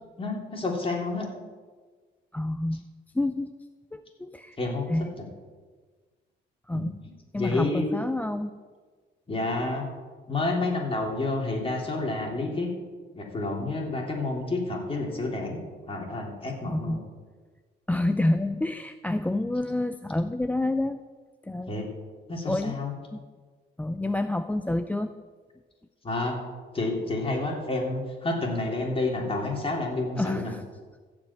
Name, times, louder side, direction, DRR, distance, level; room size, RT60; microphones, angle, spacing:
voice 1, 0.2-1.3 4.6-4.8 6.7-6.9 7.3-7.9 9.3-9.9 10.3-12.7 13.1-15.6 15.9-17.0 21.7-21.9 22.3-22.9 26.0-26.4 26.7-30.5, left 2 dB, 25° left, 0 dB, 3.2 m, -29 dB
voice 2, 2.3-2.8 3.1-3.5 3.9-4.6 4.9-5.2 6.7-7.0 7.3-8.6 16.7-17.0 17.9-21.0 21.4-21.9 22.5-22.8 23.1-23.2 23.8-25.1 30.2-30.6, left 1 dB, 10° left, 9 dB, 0.4 m, -28 dB
14.5 x 5.3 x 8.7 m, 1.5 s
cardioid pair, 90°, 20 cm